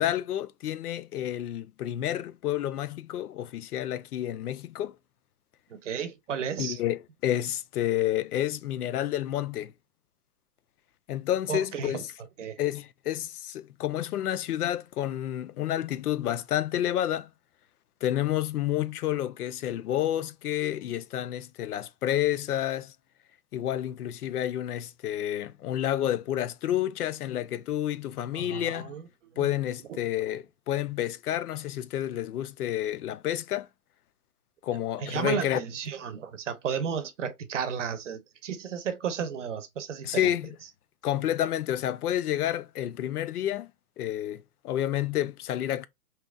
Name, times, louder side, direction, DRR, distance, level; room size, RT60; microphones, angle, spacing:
voice 1, 0.0-5.0 6.6-9.7 11.1-12.1 12.6-17.3 18.0-22.9 23.5-28.9 29.4-33.7 34.6-35.6 40.0-40.5 41.0-43.7 44.0-45.9, left 12 dB, 80° left, 0.5 m, -30 dB
voice 2, 5.7-6.8 11.5-12.0 12.4-12.6 28.3-29.1 29.3-29.5 29.9-30.0 35.0-40.3, right 7 dB, 55° right, 0.7 m, -33 dB
2.8 x 2.3 x 3.4 m
hypercardioid pair, 165°, 45 cm